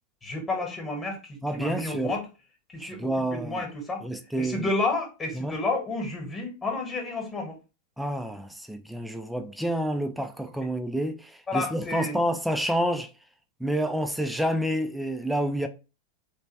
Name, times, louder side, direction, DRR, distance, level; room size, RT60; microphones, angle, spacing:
voice 1, 0.2-2.3 2.7-4.0 4.4-7.6 11.5-12.2, left 2 dB, 20° left, 1.2 m, -31 dB
voice 2, 1.4-2.1 2.8-3.6 4.0-4.7 5.3-5.6 8.0-13.1 13.6-15.7, right 1 dB, ahead, 0.4 m, -29 dB
3.2 x 2.9 x 2.9 m
figure-of-eight pair, 90°, 0 cm